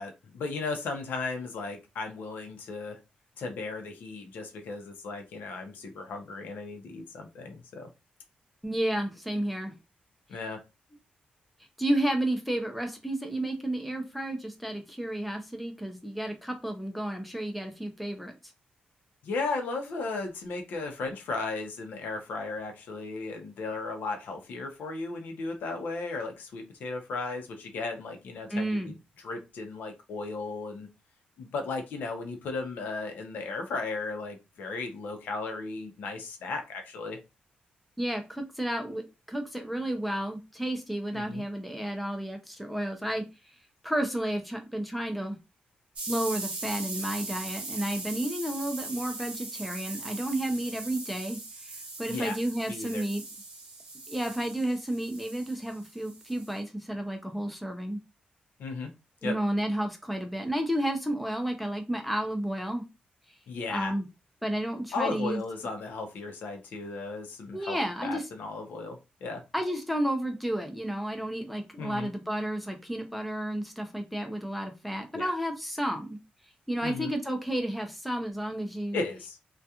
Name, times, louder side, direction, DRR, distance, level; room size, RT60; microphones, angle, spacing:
voice 1, 0.0-3.0 3.4-7.9 10.3-10.6 19.2-28.9 29.2-30.9 31.4-37.2 41.1-41.5 52.1-52.3 52.7-53.0 58.6-58.9 59.2-59.3 63.5-63.9 64.9-67.8 68.0-69.4 71.8-72.1 75.1-75.3 76.8-77.1 78.9-79.4, left 3 dB, 85° left, 4 dB, 0.6 m, -35 dB
voice 2, 8.6-9.7 11.8-18.3 28.5-28.9 38.0-43.2 43.8-45.4 46.1-53.2 54.1-58.0 59.2-62.8 63.7-64.1 64.4-65.4 67.5-68.3 69.5-76.2 76.7-79.0, right 1 dB, ahead, 4 dB, 0.5 m, -31 dB
sound 1, 46.0-56.6, right 3 dB, 40° right, 0.9 m, -40 dB
2.3 x 2.3 x 2.8 m, 0.26 s
wide cardioid pair, 155°, 3 cm